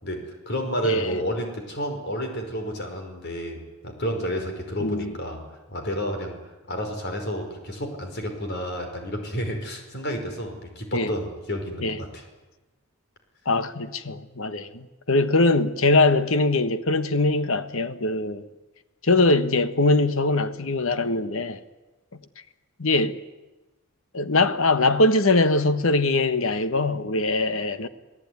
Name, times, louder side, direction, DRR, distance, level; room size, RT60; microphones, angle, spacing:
voice 1, 0.0-5.4 5.7-6.4 6.7-12.2, equal, 50° left, 5.2 m, -30 dB
voice 2, 0.8-1.2 4.8-5.2 10.9-11.1 11.8-12.0 13.4-18.5 19.0-21.6 22.8-23.2 24.1-27.9, left 2 dB, 65° left, 1.3 m, -22 dB
27.5 x 17.5 x 9.6 m
head